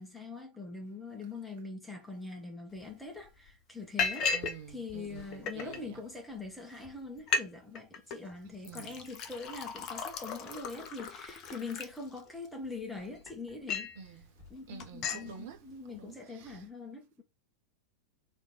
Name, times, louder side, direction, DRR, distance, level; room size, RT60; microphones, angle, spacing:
voice 1, 0.0-4.3 4.7-13.9 14.5-17.2, left 3 dB, 5° left, 1.4 m, -43 dB
Liquid, 2.8-2.9 3.3-3.5 4.0-4.6 4.9-5.8 6.5-6.6 6.8-6.9 7.2-7.5 7.8-8.2 8.6-12.5 13.0-14.0 14.4-14.6 14.8-15.3, left 5 dB, 35° left, 0.8 m, -35 dB
voice 2, 4.3-6.0 8.7-9.0 14.0-14.3 14.7-15.6 15.9-16.6, right 6 dB, 55° right, 1.3 m, -48 dB
3.3 x 3.2 x 4.4 m
figure-of-eight pair, 90°, 0 cm